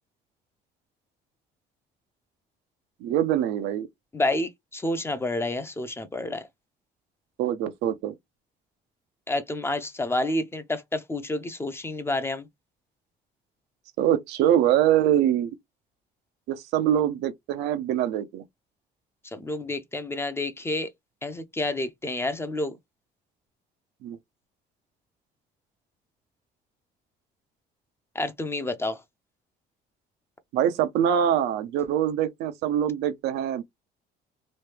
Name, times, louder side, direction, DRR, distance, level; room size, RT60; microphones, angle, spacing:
voice 1, 3.0-3.9 7.4-8.1 14.0-15.6 16.5-18.4 24.0-24.2 30.5-33.6, right 10 dB, 85° right, 0.6 m, -24 dB
voice 2, 4.1-6.5 9.3-12.5 19.3-20.9 21.2-22.8 28.1-29.0, left 2 dB, 15° left, 0.5 m, -29 dB
3.1 x 2.2 x 3.3 m
cardioid pair, 110°, 17 cm